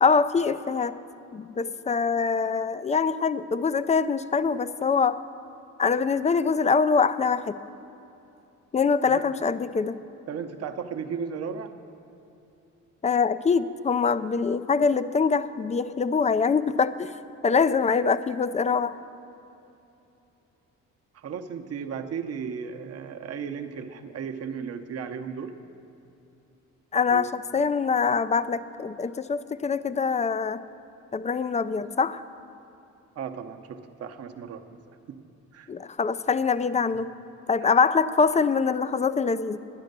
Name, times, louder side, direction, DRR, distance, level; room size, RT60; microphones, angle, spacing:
voice 1, 0.0-1.0 1.3-5.2 5.8-7.6 8.7-10.0 13.0-17.1 17.4-19.0 26.9-30.6 31.1-32.2 35.7-37.1 37.5-39.6, left 5 dB, 25° left, 15 dB, 0.4 m, -24 dB
voice 2, 10.3-11.7 21.1-25.5 27.1-27.3 33.2-34.8 35.1-35.2 35.5-35.7 37.6-37.7, right 6 dB, 55° right, 6 dB, 0.8 m, -35 dB
10.5 x 9.7 x 6.6 m, 2.9 s
cardioid pair, 90°, 30 cm